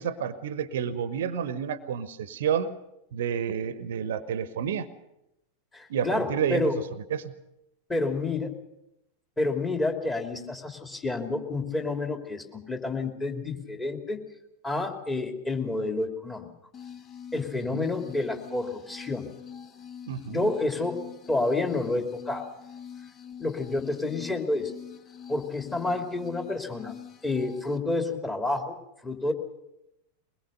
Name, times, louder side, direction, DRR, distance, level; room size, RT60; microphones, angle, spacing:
voice 1, 0.0-2.7 3.1-4.9 5.9-6.6 7.1-7.3 17.7-17.9 20.1-20.5, right 8 dB, 60° right, 15 dB, 1.0 m, -30 dB
voice 2, 5.7-6.8 7.9-8.5 9.4-14.2 14.6-16.5 17.3-19.3 20.3-21.0 21.3-22.5 23.4-24.7 25.3-26.9 27.2-28.8 29.0-29.3, left 2 dB, 10° left, 4 dB, 2.8 m, -29 dB
sound 1, 16.7-27.8, left 8 dB, 25° left, 1.2 m, -45 dB
22.5 x 20.5 x 6.6 m, 0.86 s
figure-of-eight pair, 90°, 0 cm